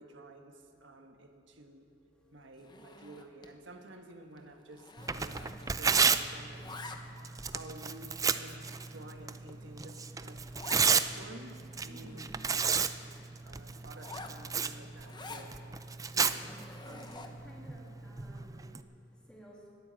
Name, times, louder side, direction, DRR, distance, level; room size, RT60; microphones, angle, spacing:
voice 1, 0.0-1.9 2.3-6.7 7.5-10.4 10.8-12.2 12.7-13.0 13.4-15.6 16.1-16.5 16.8-17.3, right 1 dB, 80° right, 4 dB, 1.5 m, -51 dB
voice 2, 1.6-2.5 11.8-13.6 16.7-19.7, right 1 dB, 5° left, -4 dB, 3.1 m, -57 dB
Zipper (clothing), 2.6-3.6 3.9-4.1 4.4-6.1 6.3-7.4 8.0-8.1 8.7-8.8 9.2-9.3 9.5-9.6 9.8-9.9 10.5-10.9 11.3-11.4 11.6-12.9 13.9-15.5 16.1-17.5, left 3 dB, 25° left, 1.0 m, -49 dB
Tearing, 5.0-18.8, right 5 dB, 20° right, 0.4 m, -33 dB
20.5 x 9.3 x 7.6 m, 2.3 s
head